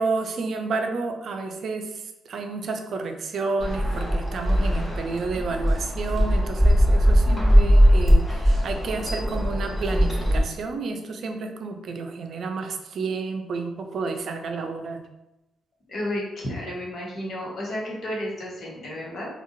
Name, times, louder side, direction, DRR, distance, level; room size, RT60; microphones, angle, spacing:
voice 1, 0.0-15.0, right 4 dB, 60° right, 5 dB, 0.4 m, -30 dB
sound 1, 3.6-10.4, equal, 15° left, 1.4 m, -20 dB
voice 2, 7.2-7.7 15.9-19.3, left 1 dB, 55° left, -4 dB, 1.2 m, -32 dB
3.6 x 2.4 x 2.6 m, 0.93 s
hypercardioid pair, 40°, 0 cm